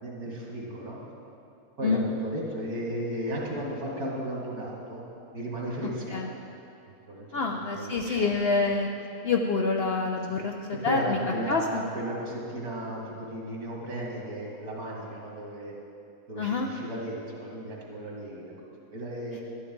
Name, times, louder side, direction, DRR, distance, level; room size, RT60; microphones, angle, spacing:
voice 1, 0.0-1.0 1.8-5.0 5.3-6.2 7.1-7.4 7.7-8.6 10.3-10.4 10.8-11.7 11.9-15.7 16.3-19.4, right 1 dB, 85° right, -3 dB, 2.5 m, -35 dB
voice 2, 5.8-6.3 7.3-8.9 9.2-11.2 11.5-11.8 16.4-16.7, left 4 dB, 65° left, 2 dB, 0.6 m, -27 dB
11.5 x 11.5 x 3.8 m, 2.7 s
omnidirectional pair, 1.6 m